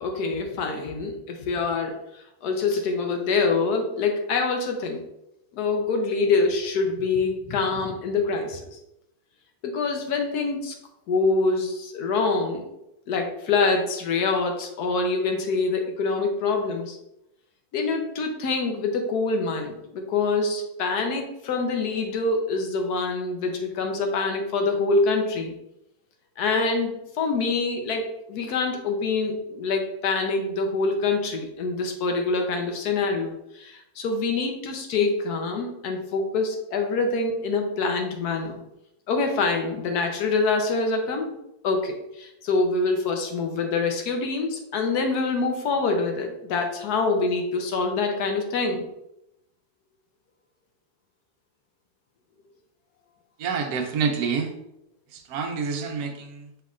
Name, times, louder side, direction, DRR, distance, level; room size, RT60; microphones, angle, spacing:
voice 1, 0.0-5.0 5.5-8.7 9.6-10.7 11.1-12.7 13.1-17.0 17.7-25.5 26.4-38.6 39.1-41.3 41.6-48.8, left 3 dB, 75° left, 4 dB, 1.2 m, -25 dB
voice 2, 53.4-54.5 55.1-56.5, right 5 dB, 70° right, 3 dB, 1.1 m, -28 dB
5.5 x 3.6 x 2.4 m, 0.84 s
omnidirectional pair, 1.7 m